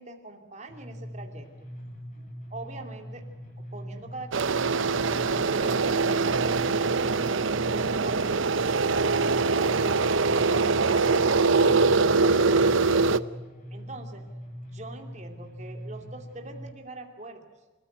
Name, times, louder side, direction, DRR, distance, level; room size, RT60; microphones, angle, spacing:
voice 1, 0.0-1.5 2.5-3.3 3.7-8.5 8.9-12.7 13.7-14.3 14.7-17.4, right 2 dB, 35° right, 5 dB, 2.6 m, -43 dB
sound 1, 0.7-16.7, equal, 40° left, 7.5 m, -42 dB
sound 2, 4.3-13.2, right 4 dB, 75° right, 0.7 m, -23 dB
29.0 x 14.5 x 9.1 m, 1.3 s
head